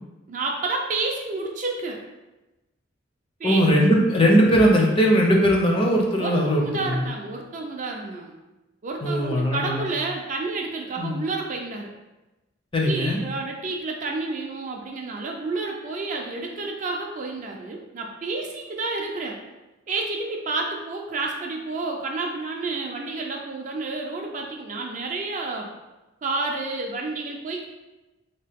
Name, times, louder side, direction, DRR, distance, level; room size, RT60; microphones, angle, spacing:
voice 1, 0.3-2.0 3.4-3.6 6.2-8.3 8.8-11.9 12.8-19.4 19.9-25.7 26.2-27.7, right 3 dB, 35° right, 1 dB, 0.3 m, -30 dB
voice 2, 3.4-7.1 9.0-9.9 11.0-11.2 12.7-13.2, equal, 25° left, 0 dB, 0.5 m, -19 dB
3.0 x 2.8 x 3.4 m, 1.1 s
head